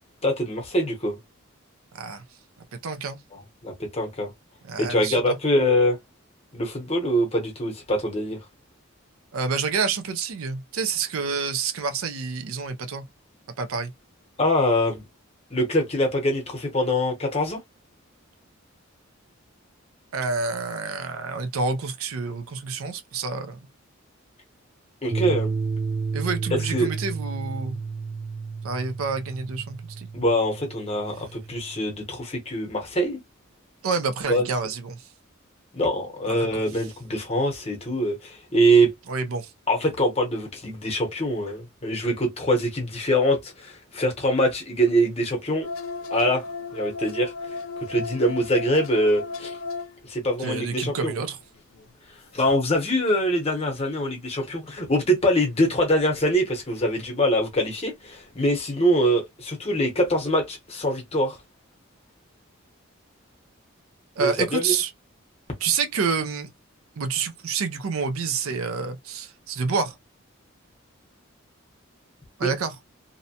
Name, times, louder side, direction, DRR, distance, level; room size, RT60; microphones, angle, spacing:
voice 1, 0.2-1.2 3.3-4.3 4.8-6.0 6.5-8.4 14.4-15.0 15.5-17.6 25.0-25.5 26.5-26.9 30.1-33.2 34.3-34.5 35.7-38.9 39.7-45.7 46.1-46.4 46.7-47.3 47.8-49.6 50.1-51.2 52.3-61.4 64.2-64.8 72.4-72.5, equal, 30° left, 0.8 m, -24 dB
voice 2, 1.9-2.2 2.8-3.2 4.7-5.4 9.3-13.0 13.6-13.9 20.1-23.6 26.1-27.8 28.6-30.1 33.8-35.0 36.3-36.6 39.1-39.5 50.4-51.4 64.2-64.9 65.6-66.5 67.0-69.9 72.4-72.8, right 5 dB, 80° right, 0.5 m, -28 dB
sound 1, 25.1-32.2, right 4 dB, 20° right, 0.4 m, -32 dB
sound 2, 45.6-50.3 50.7-51.1 51.4-53.4 54.0-54.2 56.1-56.5 56.7-56.8 57.5-58.1 58.5-58.6, left 4 dB, 75° left, 0.5 m, -35 dB
2.7 x 2.1 x 2.7 m
head